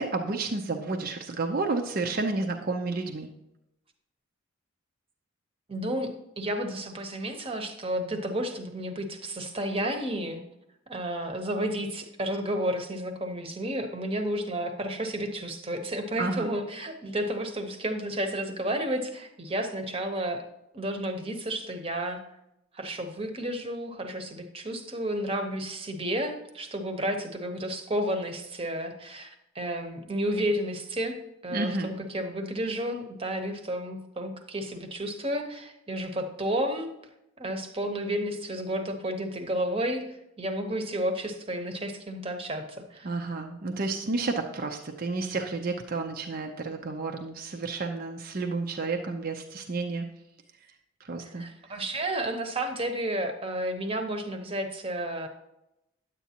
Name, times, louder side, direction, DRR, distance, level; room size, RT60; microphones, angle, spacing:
voice 1, 0.0-3.3 16.2-16.5 31.5-31.9 43.0-50.1 51.0-51.4, right 3 dB, 45° right, 3 dB, 0.6 m, -31 dB
voice 2, 5.7-10.4 10.9-20.4 20.7-22.2 22.7-31.2 31.4-36.9 37.4-40.1 40.4-43.1 51.2-55.3, right 1 dB, 25° right, 6 dB, 0.9 m, -31 dB
10.0 x 8.3 x 2.9 m, 0.85 s
head